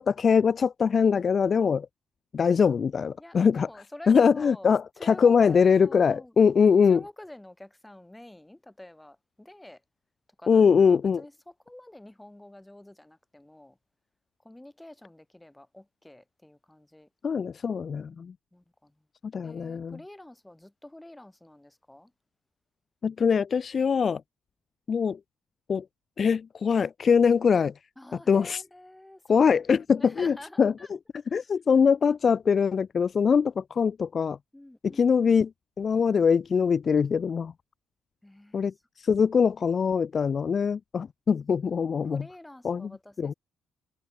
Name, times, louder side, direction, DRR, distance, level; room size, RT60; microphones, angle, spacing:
voice 1, 0.0-1.9 2.3-3.7 4.1-7.0 10.5-11.2 17.2-18.3 19.3-20.0 23.0-24.2 24.9-25.2 25.7-25.8 26.2-27.7 28.3-28.6 29.3-30.7 31.3-34.4 34.8-35.5 35.8-37.5 38.5-42.2 42.6-42.9 43.2-43.3, left 6 dB, 45° left, 0.3 m, -22 dB
voice 2, 3.2-6.5 6.9-9.8 10.4-13.8 14.4-17.1 18.1-18.3 18.5-18.9 19.4-22.1 28.0-30.9 31.3-31.6 34.5-35.3 38.2-38.7 41.8-43.3, left 1 dB, 10° left, 1.4 m, -48 dB
cardioid pair, 90°, 0 cm